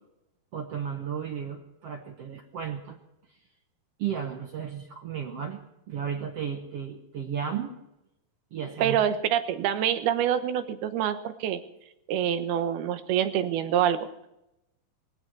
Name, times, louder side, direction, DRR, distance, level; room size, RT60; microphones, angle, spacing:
voice 1, 0.5-3.0 4.0-5.6 5.9-7.7 8.5-9.0, right 8 dB, 70° right, 4 dB, 1.5 m, -34 dB
voice 2, 8.8-11.6 12.1-14.1, right 10 dB, 85° right, 9 dB, 3.0 m, -26 dB
19.5 x 15.5 x 4.6 m, 0.87 s
omnidirectional pair, 4.3 m